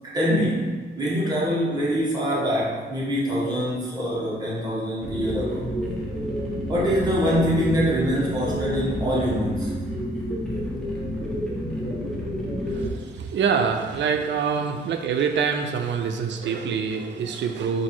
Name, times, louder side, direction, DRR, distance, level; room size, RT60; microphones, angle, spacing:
voice 1, 0.0-0.7 0.9-5.7 6.7-9.7, equal, 20° right, -6 dB, 1.2 m, -24 dB
sound 1, 5.0-12.9, equal, 5° left, 0.9 m, -29 dB
voice 2, 12.7-17.8, right 6 dB, 80° right, 5 dB, 0.4 m, -25 dB
4.2 x 2.6 x 4.4 m, 1.4 s
wide cardioid pair, 125°, 18 cm